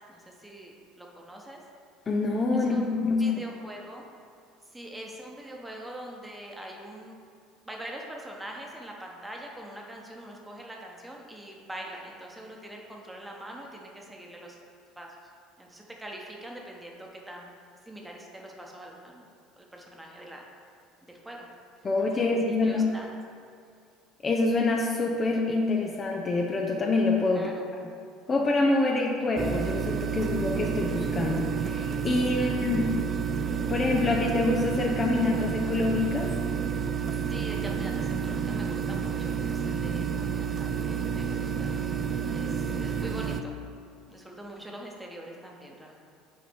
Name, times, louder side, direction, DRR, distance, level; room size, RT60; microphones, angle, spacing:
voice 1, 0.1-1.6 2.5-4.1 4.7-7.2 7.6-14.6 15.0-15.1 15.6-17.5 17.9-19.3 19.6-20.4 21.1-21.5 22.1-23.1 27.3-27.7 32.1-32.8 37.3-42.0 42.3-43.6 44.1-46.0, right 1 dB, 10° right, -1 dB, 1.2 m, -43 dB
voice 2, 2.1-3.4 21.8-22.9 24.2-27.5 28.3-32.9 33.7-36.3, left 3 dB, 30° left, 0 dB, 0.7 m, -26 dB
sound 1, 29.4-43.4, right 6 dB, 35° right, 0.4 m, -30 dB
7.3 x 4.1 x 4.6 m, 2.3 s
hypercardioid pair, 65°, 0 cm